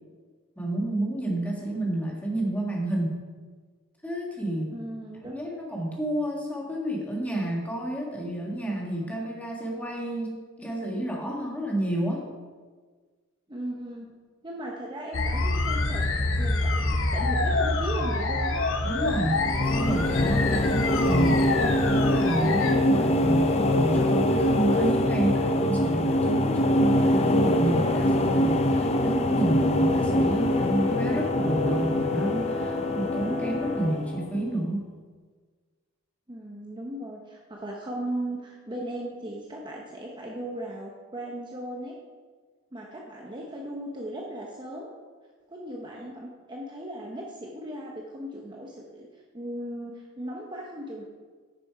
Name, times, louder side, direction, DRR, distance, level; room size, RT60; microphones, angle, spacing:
voice 1, 0.6-3.2 4.0-4.7 5.3-12.3 18.8-34.9, right 1 dB, 5° left, -2 dB, 1.7 m, -30 dB
voice 2, 4.7-5.4 13.5-14.1 14.4-16.0 16.4-18.7 36.3-42.0 42.7-44.9 45.5-51.0, right 1 dB, 20° right, -1 dB, 0.8 m, -37 dB
sound 1, 15.1-22.7, left 2 dB, 65° left, 0.9 m, -26 dB
sound 2, 19.2-34.5, left 1 dB, 30° left, 0.5 m, -24 dB
Brass instrument, 29.8-34.0, left 5 dB, 65° right, 3.0 m, -34 dB
9.5 x 6.8 x 4.7 m, 1.5 s
head